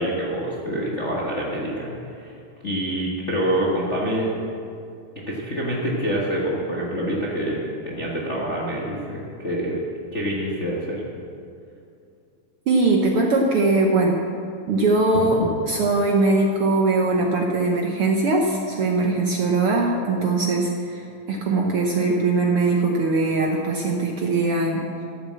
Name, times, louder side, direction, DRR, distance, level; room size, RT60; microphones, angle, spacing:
voice 1, 0.0-1.9 2.2-2.3 2.6-4.3 5.3-9.8 10.1-11.0, right 1 dB, 45° left, -5 dB, 0.9 m, -26 dB
voice 2, 12.7-14.2 14.7-15.4 15.7-24.8, right 3 dB, 70° right, 1 dB, 1.4 m, -21 dB
13.5 x 7.3 x 7.5 m, 2.5 s
omnidirectional pair, 3.6 m